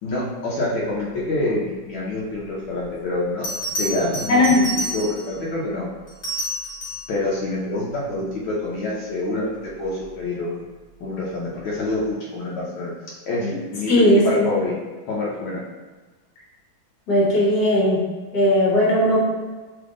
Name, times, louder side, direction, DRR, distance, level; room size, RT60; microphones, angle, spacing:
voice 1, 0.0-3.5 3.8-5.9 7.1-10.6 11.0-12.9 13.3-14.8 15.1-15.6, left 2 dB, 80° left, -5 dB, 1.6 m, -26 dB
Bell, 2.8-2.9 3.4-5.4 6.1-7.1 9.8-10.1, right 1 dB, 35° left, 1.8 m, -29 dB
voice 2, 4.3-4.7 13.4-13.6 13.9-14.5 17.1-18.0 18.3-19.2, left 1 dB, 60° left, -5 dB, 1.7 m, -17 dB
3.7 x 3.5 x 3.7 m, 1.3 s
omnidirectional pair, 2.2 m